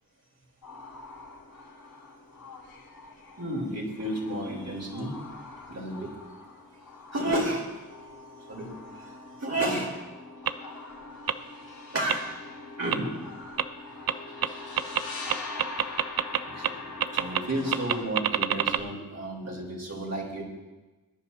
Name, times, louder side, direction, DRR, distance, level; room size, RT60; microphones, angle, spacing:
sound 1, 0.6-18.0, left 3 dB, 80° left, 5.1 m, -43 dB
voice 1, 3.4-5.2 5.7-6.1 7.1-7.7 8.5-10.0 11.9-12.3 12.8-13.1 14.5-15.1 16.4-20.4, right 1 dB, 45° right, -2 dB, 3.7 m, -32 dB
sound 2, 10.5-10.6 11.3-11.4 12.1-12.2 12.9-13.0 13.6-13.7 14.1-14.2 14.4-14.5 14.8-15.0 15.3-16.4 16.6-16.7 17.0-17.4 17.7-18.8, right 10 dB, 75° right, 0.6 m, -24 dB
22.0 x 10.0 x 2.8 m, 1.2 s
cardioid pair, 55°, 36 cm